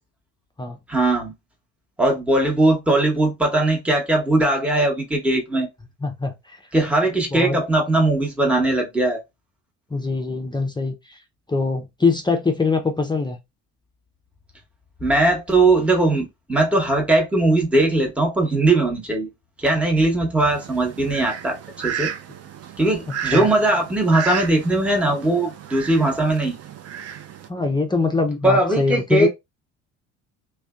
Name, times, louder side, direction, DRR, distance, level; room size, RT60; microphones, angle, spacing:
voice 1, 0.9-1.3 2.0-5.7 6.7-9.2 15.0-19.3 19.6-22.1 22.8-26.6 28.4-29.3, right 2 dB, 5° right, 0.9 m, -19 dB
voice 2, 6.0-6.6 7.3-7.6 9.9-11.2 11.5-13.4 23.1-23.5 27.5-29.3, left 4 dB, 10° left, 0.5 m, -23 dB
Fowl, 20.5-27.5, right 8 dB, 40° right, 0.6 m, -33 dB
2.5 x 2.2 x 2.3 m
hypercardioid pair, 70°, 37 cm